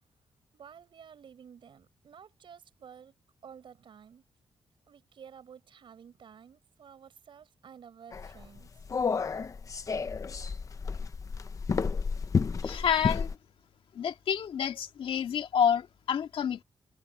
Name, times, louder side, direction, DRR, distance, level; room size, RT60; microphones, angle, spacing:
voice 1, 0.5-3.2 3.4-4.3 4.9-8.7, right 7 dB, 60° right, 7.3 m, -52 dB
sound 1, 8.1-13.3, left 5 dB, 35° left, 1.0 m, -31 dB
voice 2, 12.6-13.3 13.9-16.6, left 8 dB, 70° left, 2.1 m, -28 dB
wide cardioid pair, 140°, 9 cm